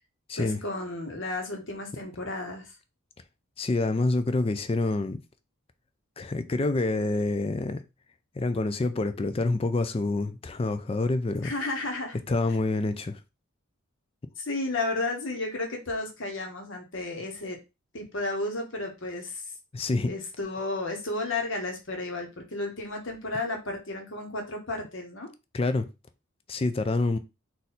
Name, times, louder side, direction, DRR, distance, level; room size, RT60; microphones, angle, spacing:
voice 1, 0.4-2.8 11.4-12.2 14.4-17.6 17.9-19.4 20.1-25.3, left 2 dB, 60° left, 1.2 m, -33 dB
voice 2, 3.6-5.2 6.2-7.8 8.4-11.5 12.3-13.2 19.7-20.1 25.5-25.9 26.5-27.2, left 2 dB, 25° left, 0.4 m, -27 dB
4.0 x 2.6 x 4.2 m
head